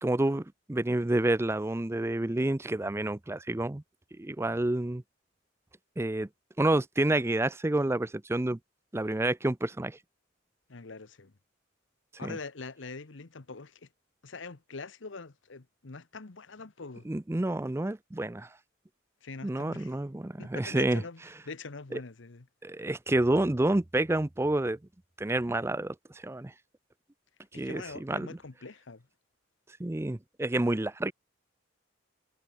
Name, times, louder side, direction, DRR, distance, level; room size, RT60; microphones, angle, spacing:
voice 1, 0.0-3.8 4.2-5.0 6.0-6.3 6.6-8.6 8.9-10.0 12.2-12.4 17.1-18.5 19.4-21.0 21.9-22.0 22.6-24.8 25.2-26.5 27.5-28.4 29.8-31.1, right 1 dB, 15° right, 0.5 m, -29 dB
voice 2, 10.7-11.3 12.2-13.9 14.2-17.1 19.2-19.9 20.4-22.5 27.5-29.1, left 4 dB, 70° left, 1.1 m, -43 dB
head